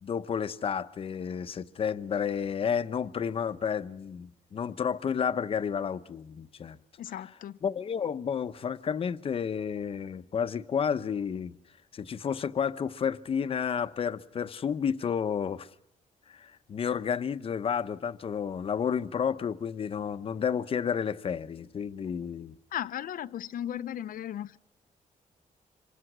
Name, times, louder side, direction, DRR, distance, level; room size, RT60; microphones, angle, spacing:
voice 1, 0.0-6.8 7.6-11.6 11.9-15.7 16.3-22.6, left 7 dB, 40° left, 0.8 m, -31 dB
voice 2, 7.0-7.6 22.7-24.6, left 11 dB, 90° left, 0.8 m, -36 dB
26.5 x 24.0 x 6.2 m
wide cardioid pair, 175°, 14 cm